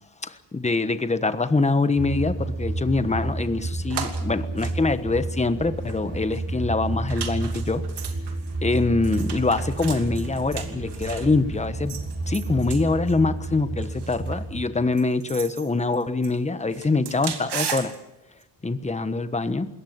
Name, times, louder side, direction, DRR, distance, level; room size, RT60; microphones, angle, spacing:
voice 1, 0.2-7.8 8.6-12.0 12.3-17.9 18.6-19.7, left 3 dB, 15° left, 11 dB, 1.3 m, -24 dB
sound 1, 2.0-14.6, right 2 dB, 35° right, 7.2 m, -31 dB
sound 2, 3.9-4.2 4.6-5.5 5.8-6.0 6.3-6.4 7.1-11.3 11.9-13.1 13.8-14.4 15.0-16.5 16.7-18.0 18.4-18.5, right 7 dB, 70° right, 2.8 m, -36 dB
21.5 x 18.0 x 7.6 m, 0.90 s
cardioid pair, 105°, 42 cm